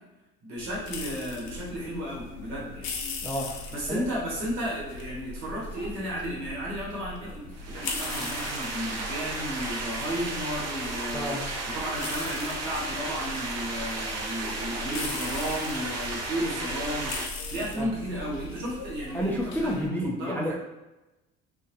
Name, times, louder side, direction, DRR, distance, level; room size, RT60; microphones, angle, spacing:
voice 1, 0.4-2.9 3.7-11.4 11.6-17.1 17.5-20.5, equal, 75° right, -5 dB, 1.0 m, -33 dB
sound 1, 0.6-19.9, left 3 dB, 60° left, 0.5 m, -40 dB
voice 2, 3.2-4.0 11.1-11.4 17.7-17.9 19.1-20.5, equal, 5° left, -1 dB, 0.3 m, -30 dB
sound 2, 7.6-17.3, right 2 dB, 50° right, 0.7 m, -34 dB
2.2 x 2.2 x 2.7 m, 1.0 s
hypercardioid pair, 55°, 33 cm